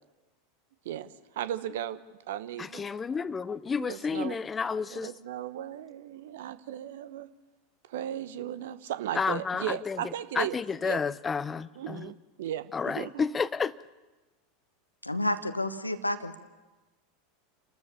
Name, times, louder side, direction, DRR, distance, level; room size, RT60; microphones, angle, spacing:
voice 1, 1.4-2.0 2.3-2.9 3.8-4.3 4.9-7.3 7.9-10.6 10.8-11.0 11.8-13.2, right 11 dB, 60° right, 14 dB, 1.0 m, -36 dB
voice 2, 2.6-5.1 9.1-12.1 12.7-13.7, left 5 dB, 20° left, 19 dB, 0.6 m, -31 dB
voice 3, 15.0-16.4, left 1 dB, 90° left, 11 dB, 1.1 m, -30 dB
29.5 x 13.0 x 7.1 m, 1.2 s
figure-of-eight pair, 80°, 0 cm